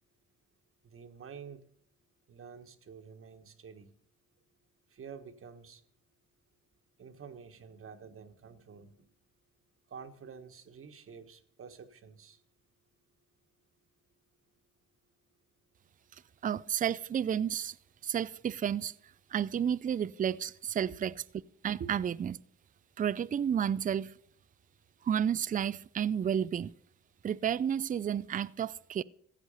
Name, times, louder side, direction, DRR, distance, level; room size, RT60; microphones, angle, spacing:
voice 1, 0.8-1.7 2.3-3.9 4.9-5.8 7.0-9.1 9.9-12.4 20.8-21.0 21.8-21.9, right 6 dB, 45° right, 1.4 m, -48 dB
voice 2, 16.4-17.8 18.0-18.9 19.3-21.1 21.6-22.4 23.0-24.1 25.0-26.7 27.2-29.0, right 8 dB, 30° right, 0.4 m, -31 dB
15.5 x 8.0 x 5.5 m
cardioid pair, 90°, 30 cm